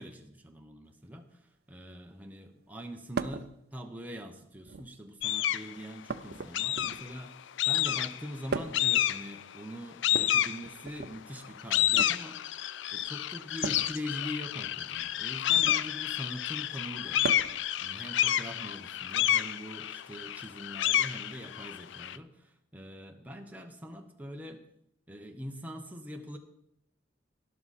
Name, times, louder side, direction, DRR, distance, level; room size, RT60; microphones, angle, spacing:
voice 1, 0.0-7.4 7.6-12.5 12.9-24.6 25.1-26.4, equal, 10° right, 3 dB, 0.9 m, -43 dB
sound 1, 3.2-3.5 4.6-5.1 6.1-7.2 8.5-8.9 10.1-11.1 11.8-12.2 13.6-13.9 15.5-15.9 17.2-17.6 19.1-19.2 20.4-20.5, right 4 dB, 55° right, 0.6 m, -37 dB
sound 2, 5.2-5.7 6.5-7.2 7.6-8.3 8.7-9.4 10.0-11.0 11.4-22.2, left 12 dB, 65° left, 0.4 m, -29 dB
12.0 x 11.0 x 4.2 m, 0.76 s
head